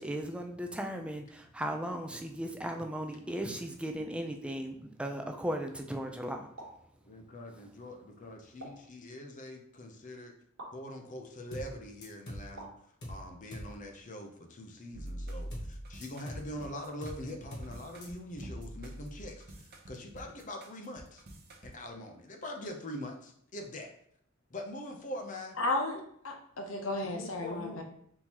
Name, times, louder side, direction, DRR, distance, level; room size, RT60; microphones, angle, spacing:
voice 1, 0.0-6.5, right 1 dB, 5° right, 0.3 m, -36 dB
sound 1, 6.6-6.9 8.6-8.9 10.6-10.8 12.6-12.9, right 1 dB, 90° right, 1.2 m, -47 dB
voice 2, 7.0-10.3 10.7-12.7 13.1-21.2 21.6-23.9 24.5-25.6 27.0-27.9, left 1 dB, 40° left, 0.6 m, -43 dB
sound 2, 11.5-11.8 12.0-12.5 13.0-13.3 13.5-13.8 15.5-15.8 16.0-16.5 17.0-17.3 17.5-17.8 18.0-18.1, equal, 55° left, 1.0 m, -42 dB
sound 3, 14.9-21.7, right 1 dB, 50° right, 0.8 m, -45 dB
voice 3, 25.6-27.7, left 2 dB, 80° left, 0.7 m, -33 dB
4.3 x 3.6 x 2.9 m
head